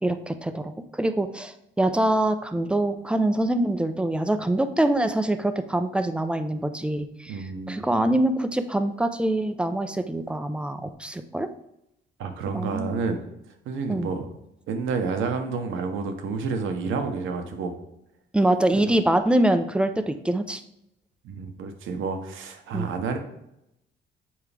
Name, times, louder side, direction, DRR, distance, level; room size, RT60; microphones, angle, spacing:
voice 1, 0.0-11.5 12.5-12.9 13.9-14.1 18.3-20.6 22.7-22.9, right 1 dB, 5° right, 9 dB, 0.6 m, -24 dB
voice 2, 7.3-7.8 12.2-13.2 13.6-14.3 14.7-17.7 21.2-23.2, right 4 dB, 85° right, 6 dB, 1.0 m, -29 dB
7.5 x 4.7 x 3.4 m, 0.83 s
cardioid pair, 90°, 20 cm